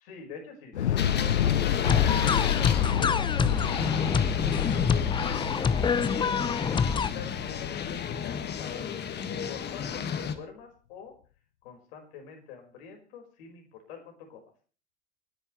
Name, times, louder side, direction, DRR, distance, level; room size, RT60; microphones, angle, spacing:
voice 1, 0.0-3.4 4.0-5.1 5.6-11.1 11.6-14.4, left 6 dB, 60° left, 3 dB, 5.0 m, -46 dB
Thunder / Explosion, 0.7-8.9, left 10 dB, 75° left, 0.6 m, -29 dB
sound 1, 1.0-10.4, left 7 dB, 30° left, 1.7 m, -34 dB
sound 2, 1.8-7.1, left 6 dB, 15° left, 0.6 m, -27 dB
28.5 x 11.0 x 3.2 m, 0.40 s
figure-of-eight pair, 75°, 34 cm